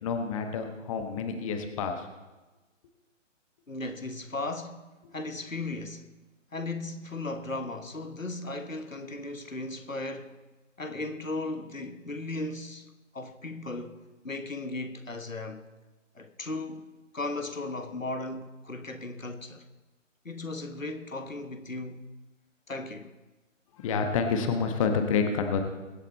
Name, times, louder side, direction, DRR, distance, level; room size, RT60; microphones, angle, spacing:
voice 1, 0.0-2.0 23.8-25.6, left 5 dB, 25° left, 1.4 m, -28 dB
voice 2, 3.7-4.8 5.1-6.1 6.5-10.4 10.8-15.6 16.1-19.7 20.2-22.1 22.7-23.1, left 2 dB, 90° left, 1.5 m, -36 dB
23.0 x 8.2 x 4.2 m
figure-of-eight pair, 135°, 38 cm